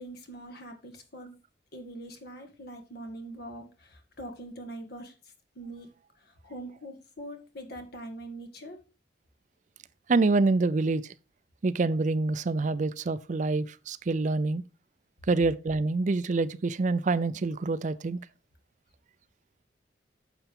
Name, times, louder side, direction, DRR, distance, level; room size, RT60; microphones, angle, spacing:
voice 1, 0.0-1.4 1.7-5.1 5.6-5.9 6.4-8.8, right 1 dB, 55° left, 2.0 m, -43 dB
voice 2, 10.1-11.1 11.6-14.6 15.3-18.2, right 3 dB, 40° right, 0.4 m, -26 dB
10.0 x 6.9 x 3.6 m
head